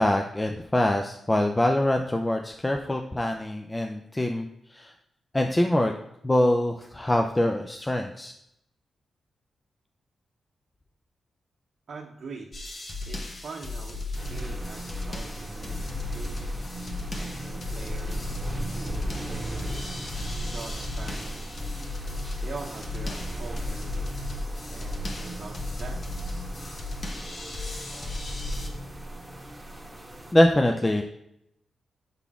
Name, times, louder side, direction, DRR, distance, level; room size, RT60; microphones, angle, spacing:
voice 1, 0.0-4.9 5.3-5.9 6.2-8.3 30.3-31.0, left 1 dB, 15° left, 3 dB, 0.4 m, -24 dB
voice 2, 11.9-12.5 13.0-16.4 17.2-20.2 20.5-21.7 22.4-24.0 24.7-26.0, right 4 dB, 65° right, -1 dB, 0.7 m, -43 dB
Metal copress drum, 12.5-28.7, left 2 dB, 45° left, 1.1 m, -35 dB
sound 1, 14.1-30.3, right 1 dB, 10° right, 1.2 m, -37 dB
6.9 x 4.0 x 3.6 m, 0.79 s
cardioid pair, 75°, 0 cm